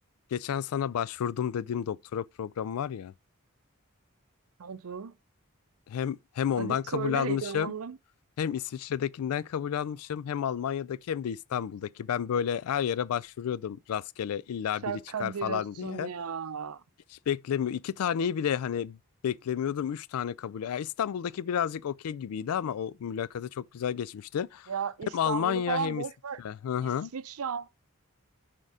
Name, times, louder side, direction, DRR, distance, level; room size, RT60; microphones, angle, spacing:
voice 1, 0.3-3.1 5.9-7.7 8.4-16.1 17.3-19.0 19.2-24.7 25.1-26.0 26.4-27.1, left 8 dB, 90° left, 0.3 m, -31 dB
voice 2, 4.6-5.2 6.6-8.0 14.8-16.8 24.7-26.4 26.8-27.7, right 6 dB, 80° right, 0.5 m, -35 dB
6.5 x 3.6 x 4.9 m
head